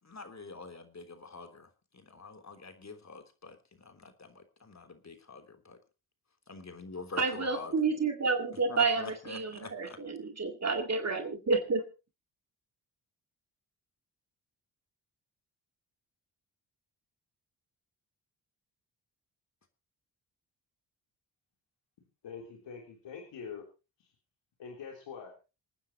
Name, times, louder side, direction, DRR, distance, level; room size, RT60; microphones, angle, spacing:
voice 1, 0.0-5.8 6.5-7.8 8.7-10.0, left 3 dB, 40° left, 3.4 m, -46 dB
voice 2, 7.2-9.0 9.3-11.8, right 4 dB, 35° right, 2.2 m, -29 dB
voice 3, 22.2-23.7 24.0-24.1 24.6-25.4, left 6 dB, 80° left, 3.5 m, -44 dB
26.5 x 9.5 x 3.0 m
cardioid pair, 55°, 43 cm